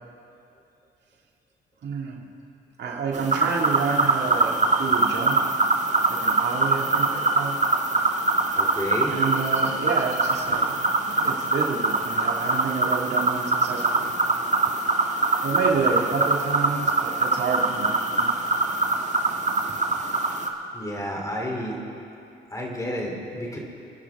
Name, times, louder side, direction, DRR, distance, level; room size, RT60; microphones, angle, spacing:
voice 1, 1.8-2.3 2.8-5.4 6.1-7.6 9.1-10.8 11.0-14.1 15.4-18.3, right 5 dB, 60° right, -1 dB, 2.1 m, -29 dB
sound 1, 3.1-20.5, right 3 dB, 35° right, 1.6 m, -23 dB
voice 2, 8.6-9.2 20.7-21.8 22.5-23.6, equal, 15° left, -1 dB, 3.2 m, -30 dB
29.0 x 10.0 x 3.5 m, 2.7 s
cardioid pair, 90°, 20 cm